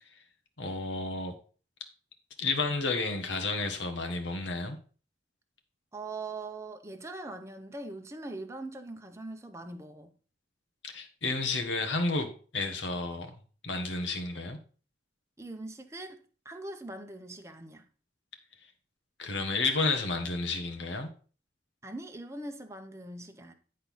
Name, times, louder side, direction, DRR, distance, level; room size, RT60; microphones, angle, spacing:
voice 1, 0.6-1.3 2.4-4.8 10.8-14.6 19.2-21.1, left 3 dB, 80° left, 1.6 m, -31 dB
voice 2, 5.9-10.1 15.4-17.9 21.8-23.5, right 2 dB, 15° right, 0.8 m, -42 dB
10.5 x 4.2 x 5.5 m
head